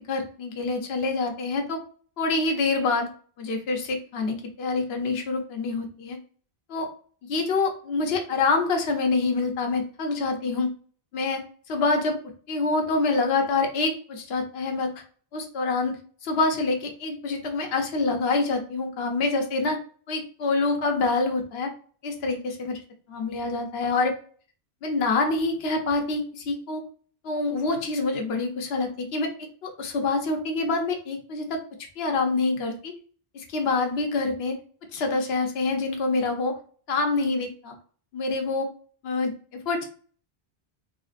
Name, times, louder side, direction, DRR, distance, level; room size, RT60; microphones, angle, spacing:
voice 1, 0.1-1.8 2.2-3.1 3.4-6.2 6.7-6.9 7.2-10.7 11.1-11.4 11.7-12.2 12.5-14.9 15.3-16.0 16.2-19.8 20.1-21.7 22.0-22.8 23.1-24.1 24.8-26.8 27.2-29.3 29.6-31.6 32.0-32.9 33.3-34.6 34.9-36.5 36.9-37.7 38.1-38.7 39.0-39.8, left 3 dB, 70° left, 3 dB, 1.0 m, -26 dB
3.8 x 3.5 x 2.4 m, 0.43 s
omnidirectional pair, 1.1 m